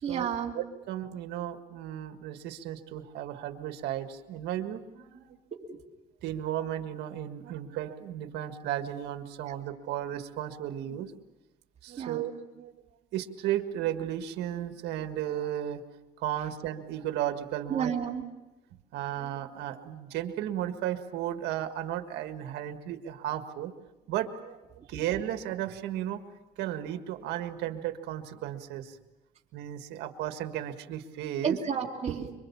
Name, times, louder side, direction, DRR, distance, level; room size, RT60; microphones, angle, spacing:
voice 1, 0.0-0.5 5.5-5.8 12.0-12.3 17.7-18.2 24.8-25.0 31.4-32.3, right 7 dB, 40° right, 0 dB, 2.8 m, -31 dB
voice 2, 0.6-5.4 6.2-11.1 11.8-12.7 13.1-15.8 16.2-17.9 18.9-23.7 24.1-24.6 24.9-26.2 26.6-29.0 29.5-31.6, right 11 dB, 85° right, 8 dB, 1.7 m, -34 dB
26.0 x 24.0 x 7.2 m, 1.1 s
cardioid pair, 110°, 17 cm